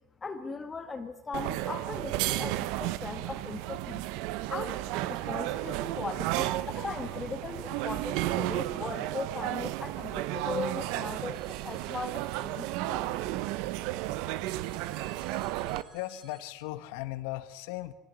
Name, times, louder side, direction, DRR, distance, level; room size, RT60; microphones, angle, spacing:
voice 1, 0.2-4.0 4.5-13.1, left 4 dB, 20° left, 6 dB, 1.6 m, -39 dB
sound 1, 1.3-15.8, right 16 dB, 70° right, 0.9 m, -33 dB
voice 2, 5.3-5.8 6.3-7.3 7.7-7.9 15.9-17.9, left 16 dB, 80° left, 12 dB, 1.5 m, -40 dB
sound 2, 14.6-16.4, right 4 dB, 35° right, 6.2 m, -60 dB
24.0 x 17.5 x 9.7 m, 0.98 s
supercardioid pair, 120°, 0 cm